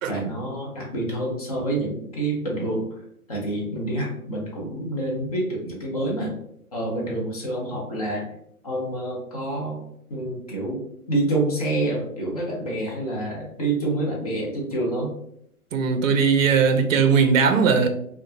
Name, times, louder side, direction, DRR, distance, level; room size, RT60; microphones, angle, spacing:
voice 1, 0.1-2.8 3.3-6.3 6.7-8.2 8.6-9.8 10.1-10.8 11.1-15.1, right 1 dB, 25° left, 0.5 m, -27 dB
voice 2, 15.7-17.9, right 5 dB, 60° right, 0.5 m, -19 dB
2.8 x 2.1 x 2.5 m
hypercardioid pair, 145°, 45 cm